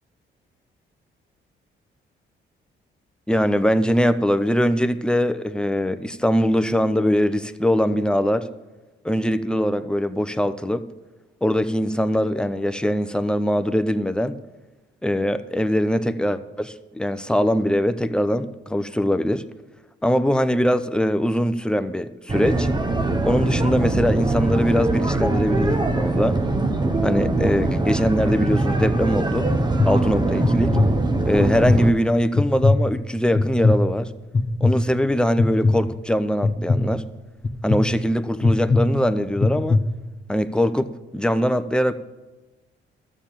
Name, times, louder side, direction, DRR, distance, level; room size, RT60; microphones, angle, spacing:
voice 1, 3.3-8.5 9.0-10.9 11.4-14.4 15.0-19.4 20.0-22.7 23.2-26.4 27.0-29.5 29.9-30.8 31.3-34.1 34.6-37.0 37.6-39.8 40.3-42.0, equal, 5° left, 0.7 m, -22 dB
sound 1, 22.3-31.9, right 2 dB, 20° right, 0.9 m, -22 dB
sound 2, 28.5-28.9 29.4-29.9 30.4-30.9 31.4-31.8 32.3-32.8 33.3-33.8 34.3-34.7 35.4-35.8 36.4-36.8 37.4-37.8 38.4-38.8 39.4-39.8, left 3 dB, 35° left, 1.3 m, -18 dB
13.0 x 7.4 x 6.9 m
cardioid pair, 90°, 20 cm